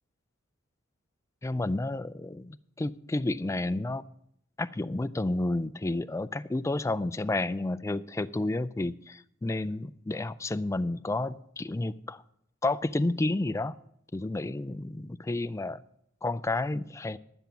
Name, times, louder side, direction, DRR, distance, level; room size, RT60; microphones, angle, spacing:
voice 1, 1.4-4.0 4.6-12.2 12.6-13.7 14.1-15.8 16.2-17.2, left 2 dB, 15° left, 14 dB, 0.3 m, -31 dB
12.0 x 7.6 x 6.9 m, 0.72 s
head